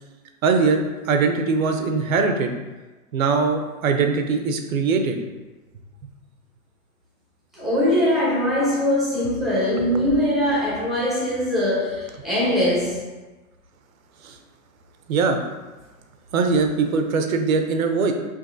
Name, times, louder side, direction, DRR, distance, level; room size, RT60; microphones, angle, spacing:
voice 1, 0.4-2.5 3.1-5.2 14.2-14.4 15.1-15.4 16.3-18.1, right 4 dB, 70° right, 5 dB, 0.7 m, -21 dB
voice 2, 7.5-13.1, left 1 dB, ahead, -8 dB, 0.7 m, -22 dB
5.2 x 2.7 x 2.6 m, 1.2 s
hypercardioid pair, 150°, 43 cm